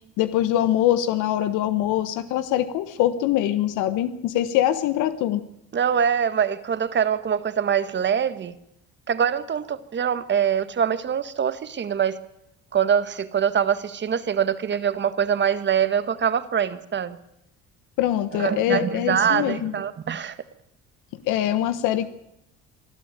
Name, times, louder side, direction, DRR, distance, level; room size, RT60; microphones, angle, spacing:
voice 1, 0.2-5.4 18.0-19.7 21.3-22.1, left 12 dB, 85° left, 11 dB, 1.3 m, -23 dB
voice 2, 5.7-8.5 9.1-12.2 12.7-17.2 18.3-20.4, right 8 dB, 35° right, 14 dB, 1.5 m, -24 dB
25.0 x 13.0 x 9.1 m, 0.82 s
cardioid pair, 110°, 30 cm